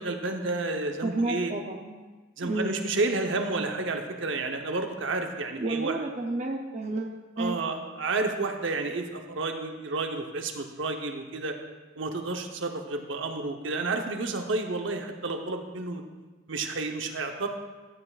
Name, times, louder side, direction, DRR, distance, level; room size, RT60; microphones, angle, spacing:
voice 1, 0.0-1.5 2.4-6.0 7.4-11.5 12.0-16.0 16.5-17.5, right 3 dB, 70° right, 4 dB, 0.8 m, -31 dB
voice 2, 1.0-2.0 2.4-2.8 5.6-7.6, right 2 dB, 35° right, 2 dB, 0.5 m, -31 dB
14.0 x 7.8 x 2.4 m, 1.3 s
head